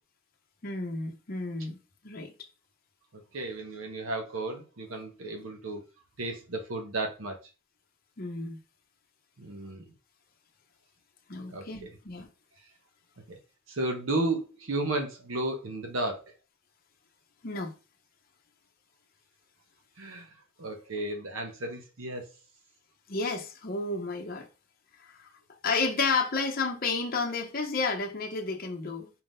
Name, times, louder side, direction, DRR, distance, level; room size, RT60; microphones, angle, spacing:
voice 1, 0.6-1.8 2.0-2.3 8.2-8.6 11.3-12.3 17.4-17.7 23.1-24.5 25.0-25.3 25.6-29.1, left 3 dB, 45° left, 0.8 m, -31 dB
voice 2, 3.3-5.8 6.2-7.4 9.4-9.8 11.5-11.9 13.3-13.4 13.7-16.3 20.0-20.3 20.6-22.3, right 2 dB, 75° right, 0.9 m, -33 dB
4.5 x 3.6 x 2.6 m
head